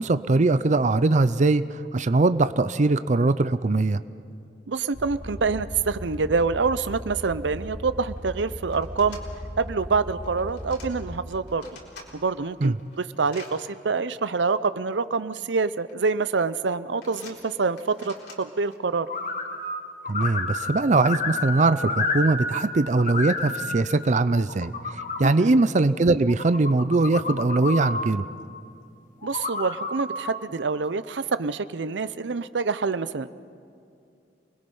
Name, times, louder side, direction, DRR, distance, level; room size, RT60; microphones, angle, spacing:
voice 1, 0.0-1.6 1.9-4.0 12.6-12.8 20.1-24.7 25.2-28.2, right 3 dB, 40° right, 13 dB, 0.5 m, -21 dB
voice 2, 4.7-9.2 9.6-11.7 12.1-19.1 25.2-25.6 29.2-33.3, right 4 dB, 85° right, 14 dB, 0.7 m, -26 dB
sound 1, 4.9-11.2, equal, 15° right, 2.3 m, -37 dB
sound 2, 7.6-7.7 7.9-8.2 8.7-9.3 10.2-10.9 11.3-12.1 12.6-13.5 14.5-14.6 15.6-15.9 16.2-16.6 17.0-18.8, left 3 dB, 70° left, 4.1 m, -47 dB
sound 3, 19.1-19.8 20.0-22.7 22.9-23.8 24.4-25.3 26.3-28.1 29.2-30.4, left 3 dB, 50° left, 1.6 m, -30 dB
28.5 x 21.0 x 5.5 m, 2.5 s
head